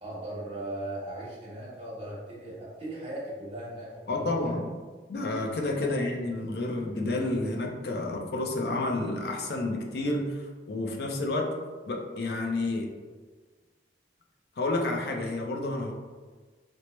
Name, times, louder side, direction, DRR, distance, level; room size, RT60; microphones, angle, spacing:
voice 1, 0.0-4.5 5.7-6.0, right 1 dB, 30° right, -7 dB, 1.2 m, -38 dB
voice 2, 4.1-4.7 5.1-11.5 11.9-12.9 14.6-15.9, left 2 dB, 60° left, 2 dB, 0.5 m, -30 dB
4.4 x 2.0 x 3.0 m, 1.4 s
head